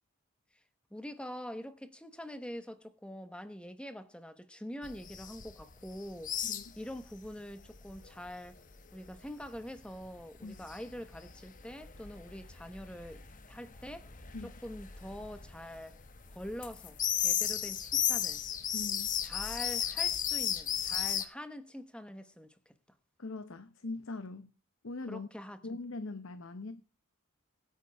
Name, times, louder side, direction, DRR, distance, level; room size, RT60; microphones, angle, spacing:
voice 1, 0.9-6.5 6.8-8.6 8.9-14.1 14.4-16.0 16.3-18.4 19.2-22.7 25.1-25.6, equal, 5° left, 1.1 m, -45 dB
sound 1, 4.8-7.3 7.6-21.2, left 10 dB, 40° left, 1.1 m, -35 dB
voice 2, 18.7-19.1 23.2-24.5 24.8-25.3 25.6-26.8, left 3 dB, 65° left, 0.8 m, -41 dB
21.5 x 9.1 x 3.5 m
head